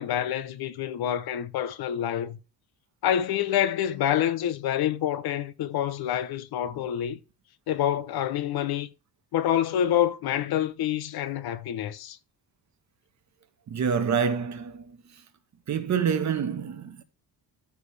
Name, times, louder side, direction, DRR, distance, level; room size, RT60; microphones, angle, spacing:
voice 1, 0.0-2.4 3.0-7.2 7.7-8.9 9.3-12.2, left 10 dB, 65° left, 0.8 m, -27 dB
voice 2, 13.7-15.0 15.7-17.0, right 7 dB, 45° right, 1.3 m, -27 dB
13.5 x 4.7 x 3.3 m
cardioid pair, 150°, 39 cm